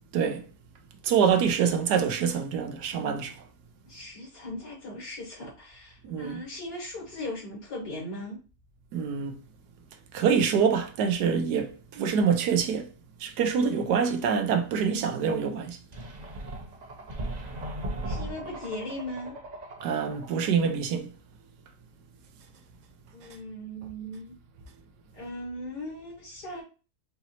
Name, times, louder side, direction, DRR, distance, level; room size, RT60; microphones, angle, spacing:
voice 1, 0.1-0.4 1.0-3.4 6.0-6.4 8.9-9.3 10.1-12.9 13.2-15.8 19.8-21.1, right 6 dB, 85° right, 1.3 m, -25 dB
voice 2, 3.8-8.4 18.0-19.4 23.1-24.4 25.1-26.6, left 1 dB, 80° left, 2.6 m, -38 dB
sound 1, 15.9-20.5, right 1 dB, 45° right, 0.5 m, -37 dB
5.2 x 2.8 x 2.8 m
omnidirectional pair, 1.7 m